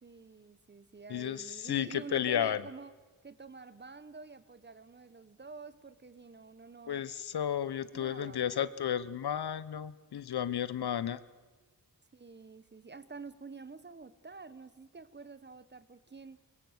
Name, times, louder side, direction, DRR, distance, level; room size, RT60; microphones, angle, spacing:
voice 1, 0.0-2.9 3.2-7.1 7.9-8.8 12.1-16.4, right 4 dB, 30° right, 16 dB, 1.0 m, -48 dB
voice 2, 1.1-2.6 6.9-11.2, left 9 dB, 80° left, 17 dB, 1.0 m, -33 dB
24.0 x 23.0 x 8.0 m, 1.3 s
wide cardioid pair, 155°, 38 cm